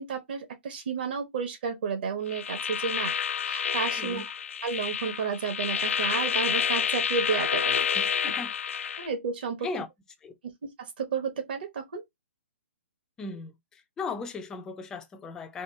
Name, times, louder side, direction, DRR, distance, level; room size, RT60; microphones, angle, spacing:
voice 1, 0.0-3.1 3.4-4.2 4.6-8.1 9.0-9.7 10.4-10.5 10.8-12.0, right 5 dB, 50° right, 1.0 m, -32 dB
sound 1, 2.3-9.1, left 8 dB, 85° left, 0.3 m, -29 dB
voice 2, 4.0-4.3 7.9-8.9 9.6-9.9 10.2-10.4 13.2-15.6, left 4 dB, 10° left, 0.4 m, -38 dB
4.3 x 2.3 x 3.3 m
hypercardioid pair, 165°, 7 cm